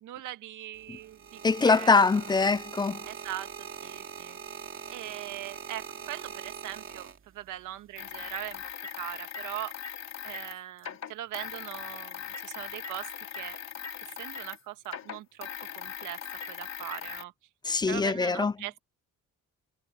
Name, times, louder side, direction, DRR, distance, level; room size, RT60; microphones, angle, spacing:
voice 1, 0.0-1.9 3.0-4.4 4.9-7.1 7.3-8.7 9.0-9.7 10.2-13.1 13.4-13.6 14.1-15.5 15.8-17.3 17.9-18.8, right 14 dB, 90° right, 1.7 m, -40 dB
sound 1, 0.7-7.6 8.4-8.7, right 7 dB, 45° right, 2.5 m, -42 dB
voice 2, 1.4-3.0 17.7-18.5, left 4 dB, 15° left, 0.4 m, -23 dB
sound 2, 8.0-14.6 14.8-17.2, left 8 dB, 60° left, 3.4 m, -40 dB
cardioid pair, 90°, 30 cm